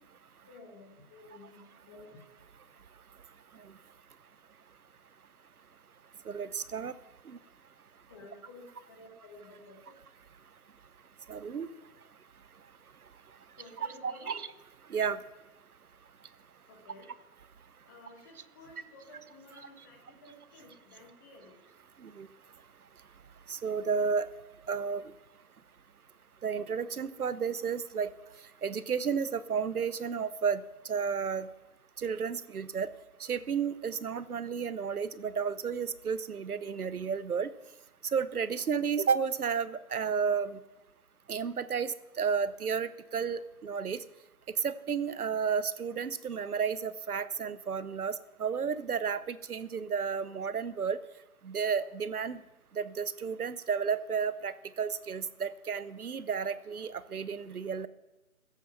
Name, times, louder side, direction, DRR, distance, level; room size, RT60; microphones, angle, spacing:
voice 1, 0.4-1.6 1.8-2.2 8.1-9.9 13.6-14.4 16.7-17.1 17.9-21.6, left 2 dB, 15° left, 1 dB, 1.4 m, -53 dB
voice 2, 6.3-6.9 7.3-7.4 11.3-11.7 13.8-14.5 14.9-15.2 22.0-22.3 23.5-24.3 24.7-25.1 26.4-28.1 28.6-31.5 32.0-32.9 33.2-37.5 38.1-40.6 41.3-44.0 44.5-51.0 51.4-52.4 52.7-57.9, right 6 dB, 85° right, 16 dB, 0.9 m, -32 dB
16.0 x 8.3 x 5.8 m, 1.0 s
hypercardioid pair, 165°, 43 cm